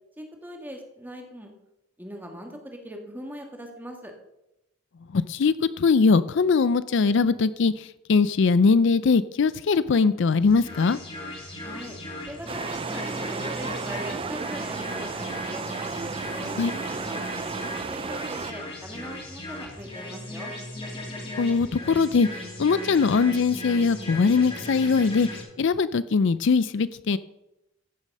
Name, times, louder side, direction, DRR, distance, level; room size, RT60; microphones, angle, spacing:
voice 1, 0.2-1.5 2.0-4.1 11.6-12.0 12.3-15.6 16.4-17.5 17.9-20.5, equal, 10° right, 2 dB, 1.8 m, -40 dB
voice 2, 5.1-11.0 16.6-16.7 21.4-22.3 22.6-25.3 25.6-27.2, left 4 dB, 60° left, 16 dB, 0.4 m, -21 dB
sound 1, 10.4-25.4, left 1 dB, 30° left, 3.1 m, -37 dB
sound 2, 12.5-18.5, right 5 dB, 25° right, 0.4 m, -33 dB
15.5 x 7.4 x 5.4 m, 0.92 s
head